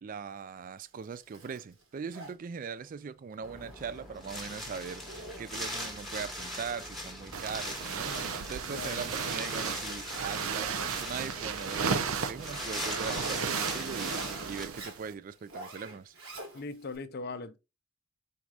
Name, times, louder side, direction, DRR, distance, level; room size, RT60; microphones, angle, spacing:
voice 1, 0.0-16.1, right 6 dB, 40° right, 0.3 m, -40 dB
Zipper (clothing), 0.8-17.0, right 1 dB, 65° right, 1.4 m, -51 dB
Wind, 3.4-14.6, equal, ahead, 1.2 m, -41 dB
sound 1, 7.3-15.1, right 6 dB, 80° right, 0.6 m, -34 dB
voice 2, 8.7-9.0 16.5-17.6, left 3 dB, 50° left, 0.5 m, -39 dB
4.7 x 4.1 x 2.4 m
head